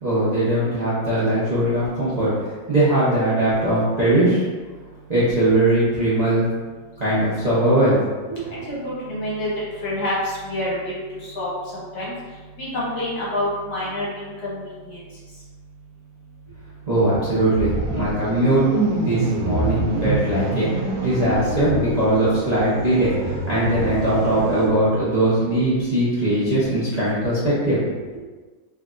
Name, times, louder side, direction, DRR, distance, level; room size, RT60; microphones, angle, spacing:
voice 1, 0.0-2.3 2.7-4.4 5.1-6.5 7.0-8.0 8.3-8.6 16.9-27.8, right 1 dB, 35° right, -12 dB, 0.6 m, -20 dB
voice 2, 8.7-9.5 9.8-10.9 11.2-12.1 12.6-15.0, left 1 dB, 60° left, -7 dB, 1.3 m, -27 dB
sound 1, 17.6-24.7, right 2 dB, 80° right, 1.4 m, -26 dB
3.6 x 3.3 x 2.5 m, 1.4 s
omnidirectional pair, 2.1 m